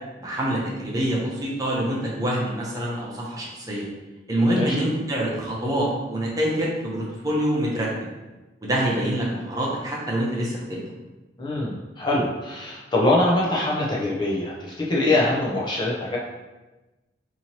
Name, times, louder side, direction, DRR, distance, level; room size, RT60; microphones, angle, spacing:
voice 1, 0.2-3.9 4.3-7.9 8.6-10.8, right 1 dB, 20° right, -5 dB, 0.8 m, -25 dB
voice 2, 4.4-4.8 11.4-16.2, left 2 dB, 25° left, -4 dB, 0.6 m, -23 dB
4.3 x 2.8 x 2.9 m, 1.1 s
head